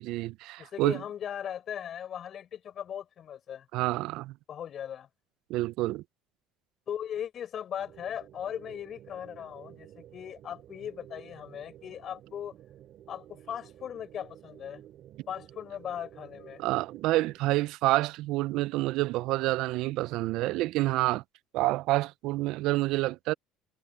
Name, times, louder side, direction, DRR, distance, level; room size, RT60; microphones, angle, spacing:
voice 1, 0.0-1.0 3.7-4.3 5.5-6.0 16.6-21.2 21.5-23.3, right 18 dB, 70° right, 0.4 m, -28 dB
voice 2, 0.6-3.7 4.5-5.1 6.9-12.5 13.1-14.8 15.3-16.6, left 9 dB, 45° left, 4.9 m, -38 dB
sound 1, 7.8-17.4, right 11 dB, 55° right, 2.6 m, -52 dB
supercardioid pair, 105°, 0 cm